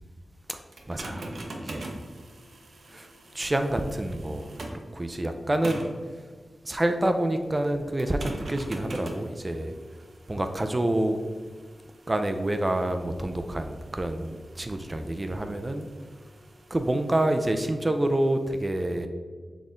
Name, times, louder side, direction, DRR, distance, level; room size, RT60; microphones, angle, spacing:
sound 1, 0.7-4.9 5.6-6.0 8.0-17.7, right 2 dB, 75° right, 0.7 m, -44 dB
voice 1, 0.9-1.4 1.6-1.9 2.9-3.1 3.3-5.8 6.6-9.7 10.3-11.2 12.1-15.9 16.7-19.1, right 1 dB, 30° right, 6 dB, 0.4 m, -27 dB
4.2 x 3.4 x 3.7 m, 1.6 s
cardioid pair, 60°, 0 cm